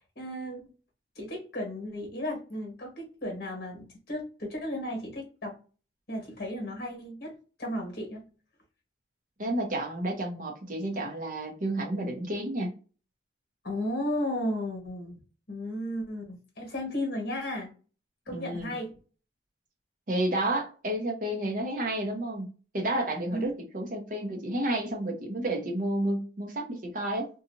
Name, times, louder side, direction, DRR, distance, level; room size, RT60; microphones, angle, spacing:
voice 1, 0.1-0.6 1.2-5.5 6.1-8.2 13.6-15.2 15.5-17.7 18.3-18.9 23.3-23.5, left 1 dB, 60° left, 1.4 m, -34 dB
voice 2, 9.4-12.8 18.3-18.7 20.1-22.5 22.7-27.3, right 1 dB, 45° right, 0.8 m, -31 dB
2.8 x 2.3 x 2.6 m
head